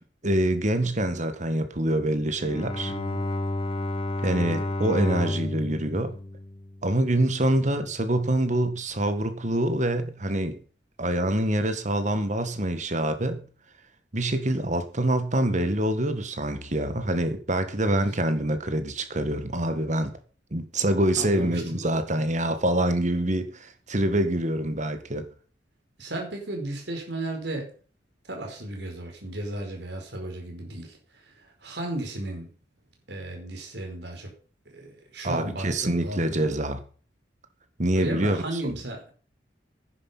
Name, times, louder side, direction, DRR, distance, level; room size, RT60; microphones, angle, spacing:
voice 1, 0.2-2.9 4.2-6.2 6.8-10.6 11.0-13.4 14.1-20.2 20.5-25.3 35.2-36.8 37.8-38.7, right 1 dB, 45° right, 1.8 m, -25 dB
Bowed string instrument, 2.2-7.4, left 1 dB, 30° left, 1.3 m, -31 dB
voice 2, 2.9-3.2 17.9-18.1 21.2-21.8 26.0-27.7 28.3-31.0 31.6-32.5 33.1-34.3 34.7-36.5 37.9-39.1, right 1 dB, 75° right, 4.9 m, -34 dB
10.5 x 10.0 x 5.7 m
head